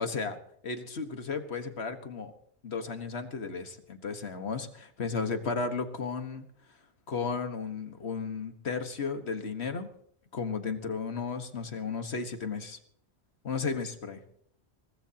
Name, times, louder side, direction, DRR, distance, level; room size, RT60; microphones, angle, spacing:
voice 1, 0.0-2.3 2.6-6.5 7.1-9.9 10.3-12.8 13.4-14.2, left 5 dB, 70° left, 7 dB, 1.8 m, -34 dB
23.5 x 18.5 x 2.9 m, 0.65 s
omnidirectional pair, 1.1 m